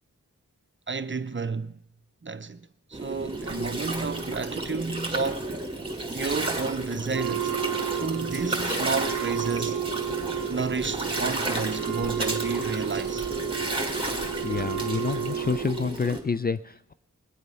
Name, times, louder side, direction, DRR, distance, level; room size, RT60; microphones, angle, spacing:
voice 1, 0.9-1.8 2.2-5.5 6.1-7.5 8.0-9.8 10.5-13.3, right 4 dB, 35° right, 0.7 m, -31 dB
Gurgling, 2.9-16.2, right 2 dB, 15° right, 2.3 m, -32 dB
Wind instrument woodwind instrument, 7.1-15.9, right 10 dB, 80° right, 0.5 m, -32 dB
voice 2, 14.4-16.9, left 5 dB, 30° left, 0.4 m, -28 dB
20.5 x 8.0 x 5.6 m
cardioid pair, 50°, 32 cm